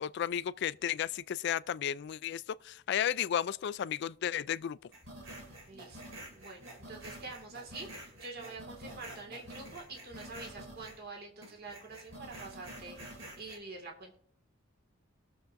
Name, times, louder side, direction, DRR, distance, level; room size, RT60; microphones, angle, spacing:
voice 1, 0.0-4.8, left 9 dB, 55° left, 0.3 m, -33 dB
sound 1, 4.9-11.1 11.4-13.6, right 1 dB, 70° right, 2.7 m, -48 dB
voice 2, 5.7-6.0 6.3-14.2, right 3 dB, 50° right, 1.9 m, -46 dB
20.5 x 6.9 x 2.6 m
head